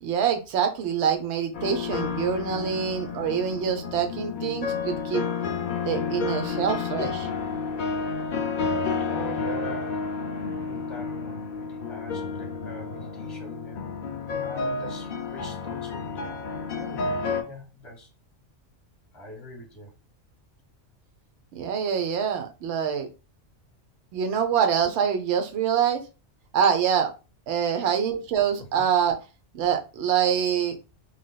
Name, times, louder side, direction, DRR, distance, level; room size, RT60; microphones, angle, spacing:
voice 1, 0.0-5.3 5.9-7.3 21.5-23.1 24.1-26.0 26.5-27.1 27.5-29.2 29.5-30.8, right 8 dB, 65° right, 0.9 m, -25 dB
sound 1, 1.5-17.4, left 5 dB, 55° left, 0.6 m, -30 dB
voice 2, 9.0-10.1 10.5-13.8 14.4-17.2 17.4-18.1 19.1-19.9 27.6-27.9 28.6-28.7, equal, 20° left, 1.0 m, -43 dB
3.9 x 3.3 x 2.3 m
omnidirectional pair, 1.3 m